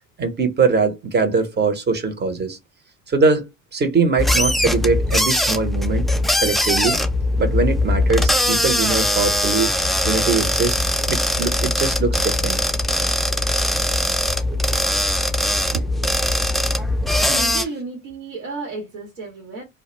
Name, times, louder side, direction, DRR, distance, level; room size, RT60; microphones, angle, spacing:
voice 1, 0.2-2.6 3.1-3.4 3.7-6.1 6.4-7.0 7.4-9.7 10.1-10.8 11.1-12.6 14.5-14.6, right 4 dB, 25° right, 0.7 m, -21 dB
sound 1, 4.2-17.6, left 1 dB, ahead, 0.4 m, -21 dB
voice 2, 17.2-19.6, right 4 dB, 80° right, 1.1 m, -31 dB
2.2 x 2.1 x 2.9 m
hypercardioid pair, 60°, 39 cm